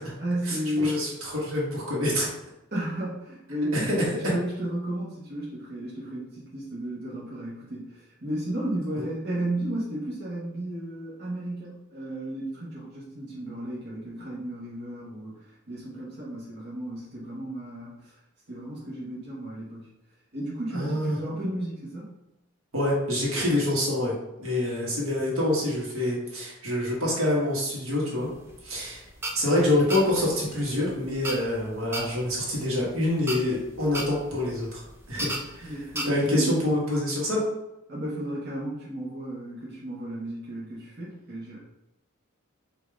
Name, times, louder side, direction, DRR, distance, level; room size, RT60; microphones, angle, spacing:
voice 1, 0.2-1.0 2.7-18.1 18.5-19.9 20.3-22.1 35.6-36.5 37.9-41.6, right 1 dB, 50° right, -7 dB, 1.2 m, -33 dB
voice 2, 0.8-2.3 3.7-3.9 20.7-21.2 22.7-24.1 24.4-28.3 28.6-29.0 29.3-34.8 35.1-35.7 36.0-37.4, left 1 dB, 75° right, -4 dB, 1.5 m, -26 dB
sound 1, 28.2-36.0, right 1 dB, 10° right, 0.5 m, -36 dB
5.0 x 2.8 x 3.5 m, 0.92 s
head